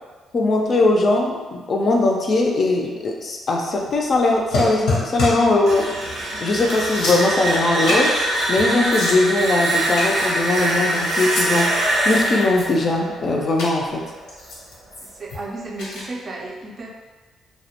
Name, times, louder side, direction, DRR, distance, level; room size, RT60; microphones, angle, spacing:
voice 1, 0.3-5.9 6.4-8.1 8.5-11.7 12.0-14.1, left 2 dB, 45° left, 1 dB, 0.4 m, -20 dB
sound 1, 4.5-5.5 6.0-6.2 6.5-7.6 7.9-8.2 8.6-8.7 8.9-9.5 10.0-10.8 11.1-11.5 11.9-12.9 13.6-13.7 14.3-15.4 15.8-16.0, left 2 dB, 90° left, 0.6 m, -27 dB
sound 2, 5.5-14.3, right 1 dB, 80° right, 0.6 m, -23 dB
voice 2, 15.0-16.9, right 2 dB, 40° right, 0 dB, 0.4 m, -33 dB
2.2 x 2.1 x 2.8 m, 1.3 s
cardioid pair, 90°, 0 cm